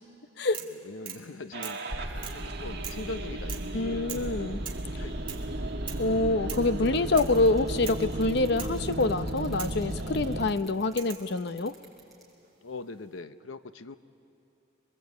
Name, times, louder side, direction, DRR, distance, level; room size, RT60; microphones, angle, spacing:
sound 1, 0.5-0.8 1.0-1.3 1.6-1.8 2.2-2.4 2.8-3.1 3.5-3.8 4.1-4.3 4.6-4.9 5.3-5.5 5.9-6.1 6.5-6.7 7.2-7.4 7.8-8.1 8.6-8.8 9.6-9.8 11.0-11.3 12.4-12.9, right 8 dB, 30° right, 2.3 m, -41 dB
voice 1, 0.6-1.8 2.3-4.1 4.8-5.4 12.6-14.0, left 3 dB, 90° left, 11 dB, 0.8 m, -41 dB
the bear, 1.5-10.5, right 1 dB, 60° right, 1.6 m, -34 dB
voice 2, 3.7-4.6 6.0-11.7, left 2 dB, 60° left, 12 dB, 0.7 m, -26 dB
sound 2, 6.9-12.3, right 4 dB, ahead, 5.4 m, -54 dB
27.0 x 22.0 x 8.3 m, 2.8 s
head